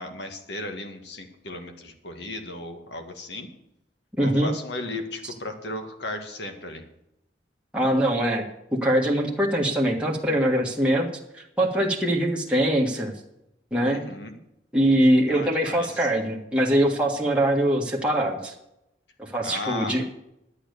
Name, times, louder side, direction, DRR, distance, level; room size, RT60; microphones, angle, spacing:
voice 1, 0.0-3.5 4.2-6.8 13.8-14.4 15.3-16.1 19.4-20.0, left 2 dB, 75° left, 6 dB, 1.9 m, -35 dB
voice 2, 4.2-4.5 7.7-8.4 8.8-11.1 11.6-13.1 13.7-14.0 14.7-18.5 19.2-20.0, right 1 dB, 5° right, -2 dB, 1.7 m, -22 dB
11.5 x 8.7 x 6.9 m, 0.84 s
head